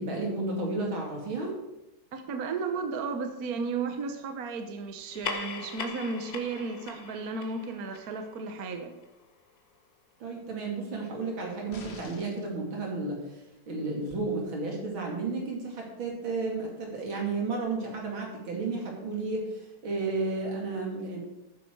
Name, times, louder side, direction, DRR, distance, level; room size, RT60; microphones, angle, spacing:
voice 1, 0.0-1.6 10.2-13.4 13.7-21.2, right 3 dB, 80° right, 0 dB, 3.5 m, -32 dB
voice 2, 2.1-8.9, right 4 dB, 55° right, 6 dB, 1.3 m, -34 dB
sound 1, 5.0-9.9, left 5 dB, 55° left, 1.6 m, -41 dB
sound 2, 11.7-12.5 14.1-14.2, left 3 dB, 35° left, 1.3 m, -47 dB
12.0 x 9.7 x 4.7 m, 0.93 s
omnidirectional pair, 2.2 m